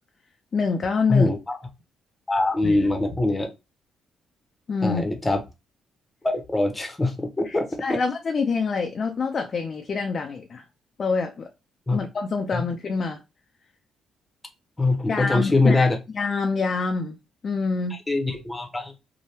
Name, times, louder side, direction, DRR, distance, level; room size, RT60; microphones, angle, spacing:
voice 1, 0.5-1.3 2.6-2.9 4.7-5.1 7.4-10.6 11.0-11.5 11.9-13.2 15.1-15.9 16.1-17.2 17.4-18.0, left 4 dB, 45° left, 0.4 m, -26 dB
voice 2, 1.1-1.6 2.3-3.5 4.8-5.4 6.2-8.0 11.9-12.0 12.5-12.6 14.8-16.0 18.1-18.9, left 2 dB, 15° left, 0.8 m, -23 dB
2.8 x 2.1 x 3.3 m
cardioid pair, 90°, 0 cm